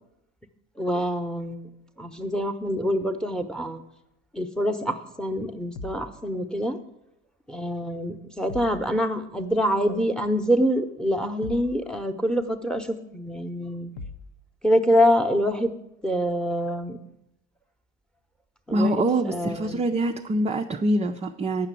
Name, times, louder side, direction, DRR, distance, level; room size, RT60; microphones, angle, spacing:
voice 1, 0.8-1.7 2.0-3.8 4.3-6.8 7.5-13.9 14.6-15.7 16.0-17.0 18.7-19.8, equal, ahead, 9 dB, 0.9 m, -25 dB
sound 1, 5.7-6.1 8.5-8.9 11.4-11.8 14.0-14.3, left 4 dB, 65° left, 0.9 m, -38 dB
voice 2, 18.7-21.7, right 1 dB, 20° right, 4 dB, 0.5 m, -24 dB
9.3 x 5.7 x 8.2 m, 0.83 s
hypercardioid pair, 90°, 37 cm